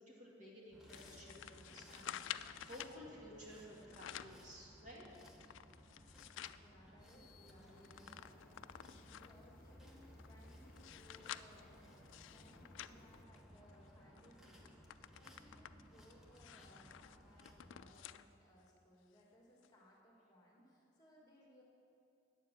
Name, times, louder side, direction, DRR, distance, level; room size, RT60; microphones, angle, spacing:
voice 1, 0.0-5.0, equal, 40° right, -4 dB, 2.1 m, -55 dB
sound 1, 0.7-18.0, equal, 5° right, 1.0 m, -61 dB
sound 2, 0.9-3.0 3.7-4.4 4.9-6.6 7.1-7.2 7.4-9.4 10.0-13.8 14.2-14.3 14.6-18.3 18.7-18.8 19.6-19.7, left 11 dB, 75° left, 0.3 m, -51 dB
voice 2, 6.5-21.6, equal, 20° left, -3 dB, 1.6 m, -65 dB
sound 3, 7.0-13.2, left 3 dB, 45° left, 0.6 m, -66 dB
9.0 x 7.3 x 7.4 m, 2.8 s
head